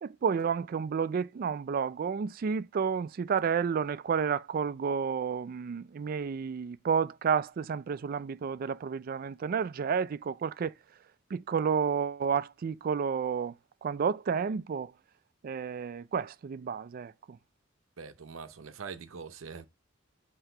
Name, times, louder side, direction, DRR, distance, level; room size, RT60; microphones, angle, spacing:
voice 1, 0.0-10.7 11.3-13.5 13.8-14.9 15.4-17.4, right 6 dB, 45° right, 0.3 m, -31 dB
voice 2, 18.0-19.7, right 5 dB, 85° right, 0.7 m, -43 dB
7.9 x 2.9 x 4.3 m
head